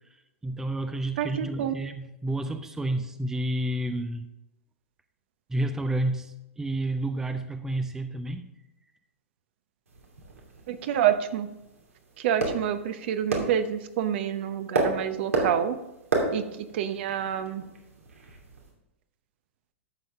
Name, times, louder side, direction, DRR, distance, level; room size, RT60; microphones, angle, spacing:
voice 1, 0.4-4.3 5.5-8.5, right 1 dB, 5° right, 0.6 m, -30 dB
voice 2, 1.2-1.7 10.7-11.5 12.2-15.8 16.3-17.6, right 9 dB, 55° right, 0.8 m, -28 dB
sound 1, 9.9-18.7, right 3 dB, 85° right, 2.6 m, -33 dB
12.0 x 7.1 x 3.7 m
hypercardioid pair, 110°, 8 cm